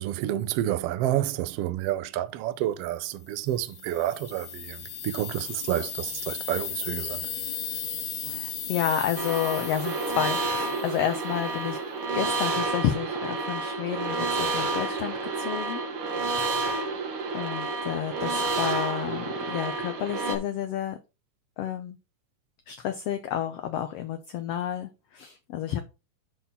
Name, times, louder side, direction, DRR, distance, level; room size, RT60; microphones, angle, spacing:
voice 1, 0.0-7.3, right 13 dB, 80° right, 1.4 m, -29 dB
sound 1, 3.4-11.3, left 8 dB, 85° left, 3.1 m, -36 dB
voice 2, 8.3-11.8 12.1-15.8 16.4-16.8 17.3-21.0 21.6-22.0 22.7-25.8, left 10 dB, 70° left, 1.6 m, -30 dB
sound 2, 9.1-20.4, right 3 dB, 50° right, 2.1 m, -30 dB
11.0 x 4.2 x 4.3 m
omnidirectional pair, 3.4 m